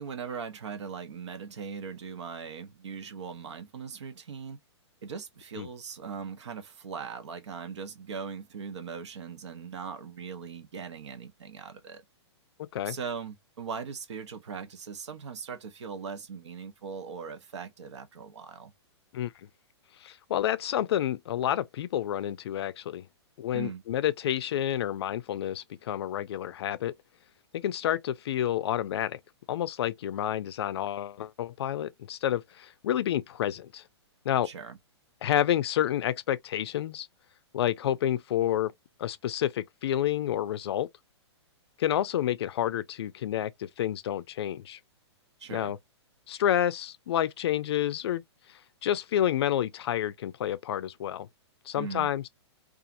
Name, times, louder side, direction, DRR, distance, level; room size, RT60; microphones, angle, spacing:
voice 1, 0.0-4.6 5.0-12.0 12.8-18.7 23.5-23.8 34.4-34.8 45.4-45.7 51.8-52.1, right 6 dB, 80° right, 0.9 m, -39 dB
voice 2, 20.0-23.1 23.4-26.9 27.5-29.2 29.5-33.8 34.3-34.5 35.2-37.1 37.5-38.7 39.0-40.9 41.8-44.8 45.5-45.8 46.3-48.2 48.8-51.3 51.7-52.3, left 11 dB, 65° left, 0.4 m, -29 dB
2.7 x 2.4 x 2.5 m
hypercardioid pair, 135°, 15 cm